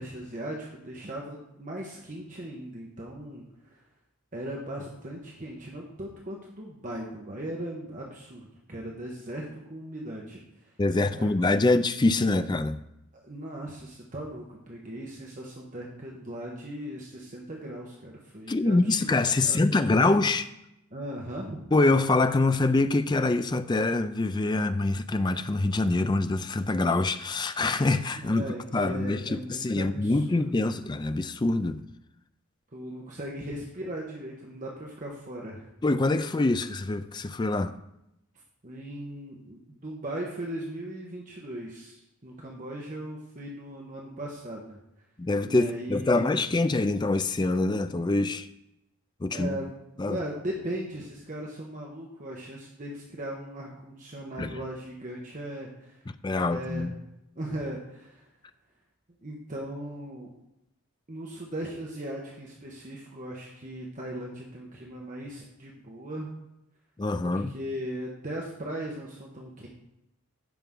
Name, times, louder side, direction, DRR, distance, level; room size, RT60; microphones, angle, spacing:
voice 1, 0.0-3.8 4.3-10.4 11.2-11.3 13.1-19.6 19.9-20.0 20.9-21.6 28.2-30.7 32.7-35.7 38.6-44.8 45.5-46.4 49.3-49.8 50.1-56.0 56.4-57.0 57.4-58.3 59.2-60.3 61.1-66.3 67.2-69.7, right 1 dB, 35° right, 1.2 m, -38 dB
voice 2, 10.8-12.8 18.5-20.5 21.7-28.4 28.7-31.8 35.8-37.7 45.2-48.5 49.2-49.6 50.0-50.2 54.4-54.6 56.2-56.9 67.0-67.5, left 2 dB, 20° left, 0.4 m, -25 dB
15.5 x 5.8 x 3.8 m
head